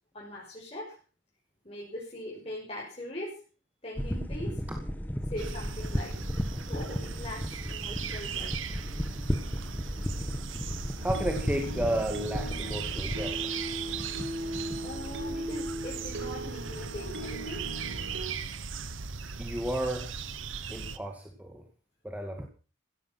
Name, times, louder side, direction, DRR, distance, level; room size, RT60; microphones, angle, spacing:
voice 1, 0.1-1.0 1.6-3.4 3.8-4.6 5.3-6.2 6.7-8.6 14.8-17.7, left 1 dB, 30° left, -5 dB, 6.1 m, -41 dB
sound 1, 3.9-13.3, equal, 10° left, 1.5 m, -34 dB
sound 2, 5.4-21.0, right 5 dB, 90° right, 1.4 m, -38 dB
voice 2, 11.0-13.5 14.0-14.1 19.4-20.1 20.7-21.6 22.0-22.5, right 1 dB, 10° right, 3 dB, 2.1 m, -33 dB
sound 3, 11.0-18.3, right 1 dB, 70° right, 3.0 m, -38 dB
16.5 x 14.0 x 6.0 m, 0.37 s
head